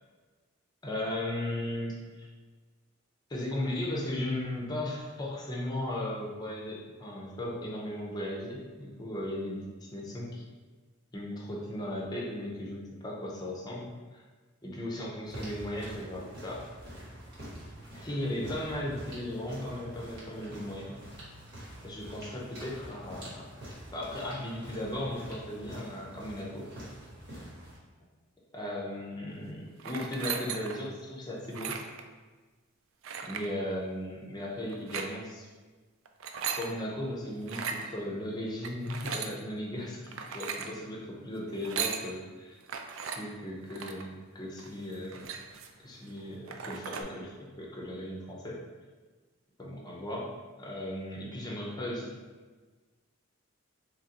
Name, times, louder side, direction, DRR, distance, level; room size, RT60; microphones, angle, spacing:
voice 1, 0.8-2.3 3.3-9.7 9.9-10.5 11.1-14.2 14.6-16.6 17.9-21.0 21.8-23.5 23.9-26.7 28.5-31.8 33.2-35.5 36.5-42.6 43.1-45.3 45.8-48.6 49.6-50.3 50.6-52.1, left 1 dB, 20° left, -3 dB, 0.6 m, -36 dB
sound 1, 15.2-27.8, right 1 dB, 55° right, 1.3 m, -46 dB
sound 2, 29.8-30.9 31.4-32.0 33.0-33.5 34.7-35.1 36.1-36.7 37.4-37.8 38.6-39.3 40.1-40.7 41.5-42.0 42.7-43.2 43.7-44.0 44.6-44.7 44.9-45.8 46.2-46.3 46.5-47.0, right 6 dB, 70° right, 0.3 m, -37 dB
3.8 x 3.1 x 2.8 m, 1.3 s
head